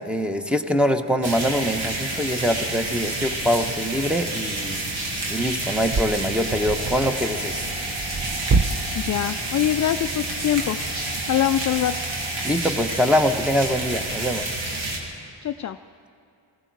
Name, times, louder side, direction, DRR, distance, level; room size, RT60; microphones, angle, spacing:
voice 1, 0.0-4.8 5.3-7.6 12.4-14.5, equal, ahead, 6 dB, 1.1 m, -23 dB
sound 1, 1.2-15.0, right 2 dB, 85° right, 2.1 m, -29 dB
sound 2, 3.6-3.8 4.5-8.7, right 4 dB, 35° right, 0.7 m, -28 dB
sound 3, 6.3-12.5, right 1 dB, 65° right, 2.6 m, -43 dB
voice 2, 8.9-12.1 15.4-15.8, left 11 dB, 40° left, 9 dB, 0.4 m, -24 dB
19.0 x 15.0 x 4.8 m, 2.5 s
supercardioid pair, 50°, 45 cm